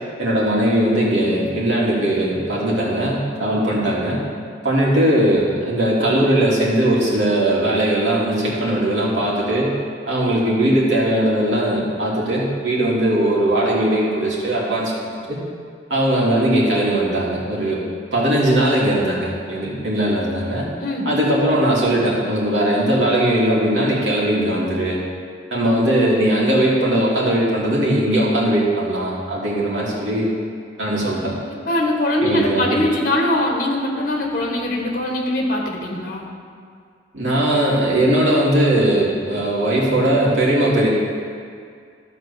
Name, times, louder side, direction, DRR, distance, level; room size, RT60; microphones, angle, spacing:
voice 1, 0.2-4.2 4.6-9.7 10.1-14.9 15.3-15.4 15.9-17.8 18.1-20.7 21.1-25.0 25.5-30.3 30.8-31.3 32.2-32.8 37.1-40.9, right 1 dB, 90° right, -5 dB, 2.6 m, -19 dB
voice 2, 20.8-21.1 31.7-36.3, left 1 dB, 50° left, 0 dB, 1.5 m, -21 dB
13.0 x 4.4 x 6.8 m, 2.2 s
head